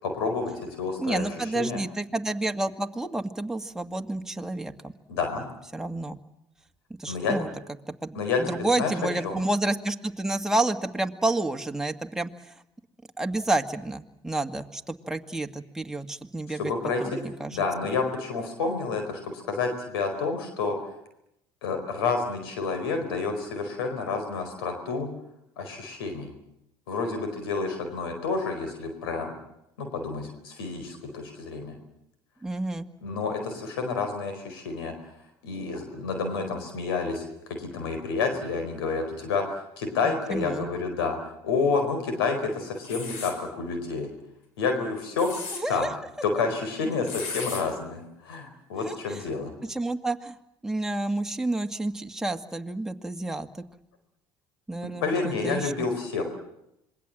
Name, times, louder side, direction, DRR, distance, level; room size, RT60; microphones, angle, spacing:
voice 1, 0.0-1.8 5.1-5.4 7.1-7.4 8.1-8.9 9.2-9.4 16.5-17.0 17.5-20.8 21.6-25.1 25.6-26.3 26.9-29.3 29.8-31.7 33.0-34.9 35.4-37.3 37.6-41.2 41.4-44.1 44.6-45.3 45.7-45.9 46.2-49.5 55.0-56.2, left 4 dB, 90° left, 5 dB, 4.5 m, -29 dB
voice 2, 1.0-4.7 5.7-6.2 7.0-7.5 8.0-12.3 13.2-16.7 17.0-17.6 32.4-32.9 40.0-40.7 45.5-45.9 48.8-49.2 49.7-50.3 50.6-53.5 54.7-55.9, right 2 dB, 5° right, 4 dB, 2.0 m, -29 dB
sound 1, 42.8-43.4 45.0-45.6 47.1-47.6, left 4 dB, 70° left, 6.5 m, -35 dB
26.5 x 22.5 x 7.6 m, 0.83 s
hypercardioid pair, 80°, 12 cm